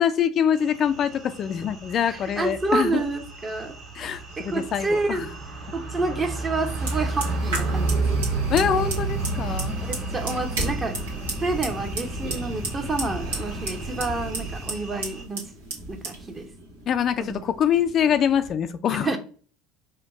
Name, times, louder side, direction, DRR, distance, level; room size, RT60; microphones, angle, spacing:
voice 1, 0.0-3.0 3.9-5.3 8.5-9.8 16.9-19.1, left 8 dB, 45° left, 10 dB, 0.4 m, -24 dB
sound 1, 0.6-15.2, right 3 dB, 55° right, 1.6 m, -31 dB
voice 2, 2.1-3.8 4.4-5.3 5.7-8.0 8.5-8.7 9.7-11.0 11.4-15.4 15.9-16.5 17.2-17.4 19.0-19.2, right 3 dB, 25° right, 5 dB, 1.0 m, -29 dB
Fire, 6.7-18.5, right 2 dB, 80° right, 1.3 m, -34 dB
4.4 x 2.3 x 4.0 m, 0.41 s
hypercardioid pair, 75°, 0 cm